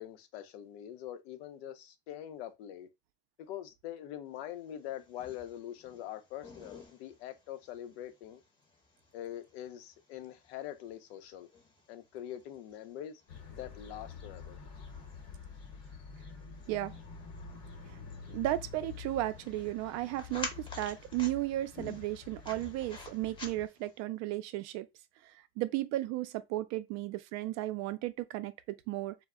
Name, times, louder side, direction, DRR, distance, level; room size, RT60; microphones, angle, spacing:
voice 1, 0.0-2.9 3.4-8.4 9.1-11.5 11.9-13.2 13.5-14.6, left 11 dB, 85° left, 0.7 m, -44 dB
sound 1, 4.6-24.0, left 3 dB, 15° left, 0.7 m, -51 dB
sound 2, 13.3-23.7, left 5 dB, 50° left, 0.9 m, -48 dB
voice 2, 16.7-17.0 18.3-24.9 25.3-29.2, right 16 dB, 60° right, 0.4 m, -35 dB
2.1 x 2.1 x 3.5 m
supercardioid pair, 130°, 31 cm